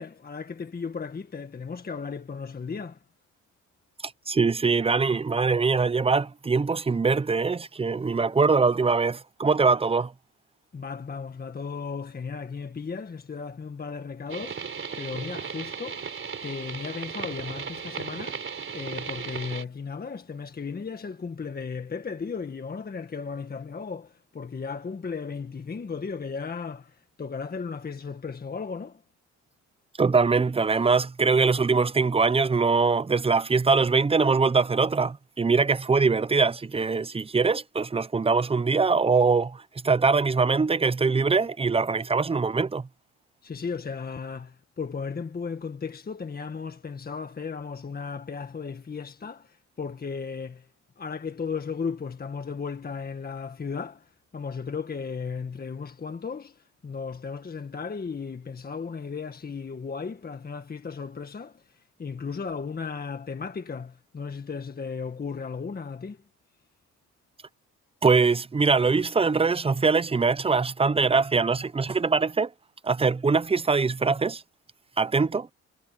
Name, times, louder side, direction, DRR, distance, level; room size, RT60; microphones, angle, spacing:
voice 1, 0.0-3.0 10.7-16.1 16.4-18.4 18.7-29.0 43.4-50.7 51.0-61.6 62.0-66.2, left 5 dB, 30° left, 1.7 m, -35 dB
voice 2, 4.0-10.1 30.0-42.9 68.0-72.5 72.8-74.4 75.0-75.5, right 4 dB, 20° right, 0.7 m, -23 dB
sound 1, 14.3-19.6, right 6 dB, 45° right, 4.4 m, -36 dB
cardioid pair, 90°, 30 cm